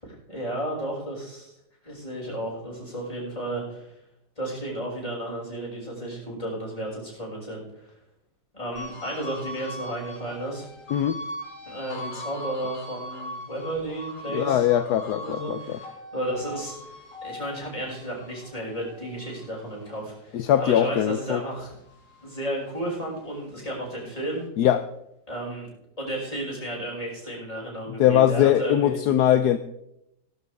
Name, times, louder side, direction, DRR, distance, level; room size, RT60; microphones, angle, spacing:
voice 1, 0.0-1.5 1.8-3.9 4.4-7.9 8.5-10.6 11.7-14.7 15.2-16.9 17.2-21.7 22.2-24.4 25.3-25.7 26.0-29.0, right 1 dB, 20° left, -5 dB, 6.5 m, -33 dB
sound 1, 8.8-21.4 21.8-23.5, equal, 50° left, 4.3 m, -40 dB
voice 2, 14.3-15.8 20.3-21.4 24.6-24.8 28.0-29.6, left 11 dB, 75° left, 10 dB, 1.2 m, -21 dB
18.5 x 12.0 x 3.5 m, 0.82 s
omnidirectional pair, 1.8 m